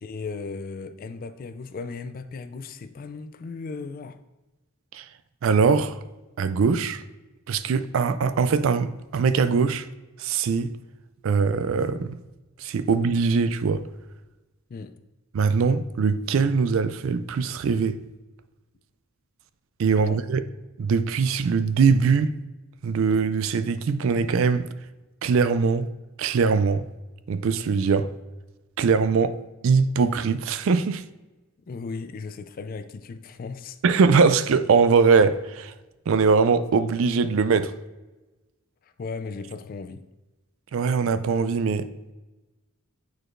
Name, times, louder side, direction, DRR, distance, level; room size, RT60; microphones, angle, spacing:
voice 1, 0.0-4.2 14.7-14.9 20.0-20.2 31.7-33.8 38.8-40.0, left 4 dB, 40° left, 0.3 m, -36 dB
voice 2, 5.4-6.0 6.4-7.0 7.5-9.9 10.2-10.7 11.2-12.2 12.6-13.9 15.3-18.0 19.8-20.4 20.8-22.4 22.8-24.7 25.2-25.9 26.2-26.9 27.3-28.1 28.8-29.3 29.6-31.0 33.8-35.7 36.1-37.7 40.7-42.1, right 5 dB, 60° right, 0.3 m, -22 dB
8.6 x 4.6 x 2.5 m
head